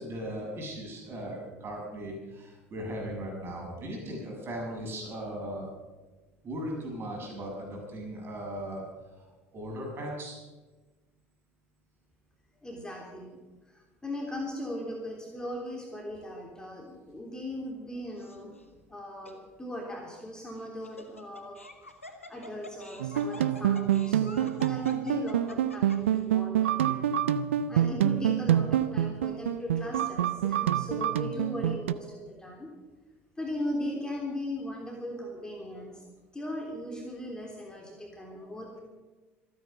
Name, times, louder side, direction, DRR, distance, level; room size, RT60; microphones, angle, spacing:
voice 1, 0.0-5.7 6.4-8.8 9.2-10.4, equal, 35° right, 0 dB, 7.3 m, -38 dB
voice 2, 12.6-13.4 13.7-18.5 18.9-21.6 22.3-27.2 27.7-32.7 33.4-36.0 36.3-38.8, left 1 dB, 10° left, 0 dB, 3.2 m, -38 dB
Laughter, 18.2-18.6 19.2-19.3 20.6-26.2, left 2 dB, 90° left, 1.5 m, -47 dB
sound 1, 23.0-31.9, right 11 dB, 70° right, 0.6 m, -27 dB
26.0 x 9.6 x 5.7 m, 1.2 s
figure-of-eight pair, 70°, 7 cm